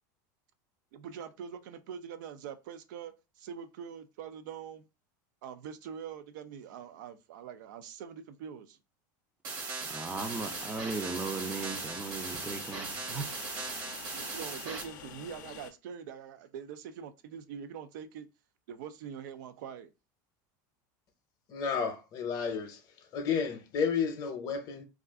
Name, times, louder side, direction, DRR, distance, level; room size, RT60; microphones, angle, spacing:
voice 1, 0.9-4.8 5.4-8.8 14.1-18.3 18.7-19.9, right 8 dB, 80° right, 0.4 m, -44 dB
sound 1, 9.4-14.8, right 4 dB, 50° right, 0.9 m, -39 dB
voice 2, 9.9-13.4, right 3 dB, 10° right, 0.4 m, -37 dB
Train, 10.2-15.7, left 9 dB, 85° left, 0.5 m, -48 dB
voice 3, 21.5-22.8 23.1-24.8, left 6 dB, 40° left, 0.6 m, -31 dB
2.4 x 2.4 x 3.5 m
supercardioid pair, 140°, 10 cm